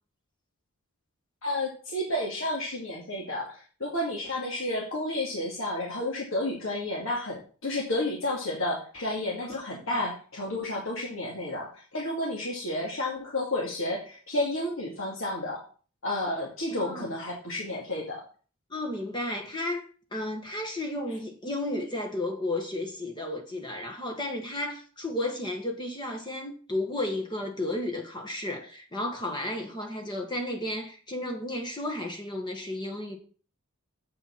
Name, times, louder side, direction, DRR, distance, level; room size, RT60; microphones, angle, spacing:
voice 1, 1.4-15.6 16.0-18.2, left 1 dB, 65° left, 2.2 m, -31 dB
voice 2, 16.7-17.1 18.7-33.2, left 1 dB, 20° left, 1.5 m, -33 dB
7.7 x 7.0 x 5.9 m
head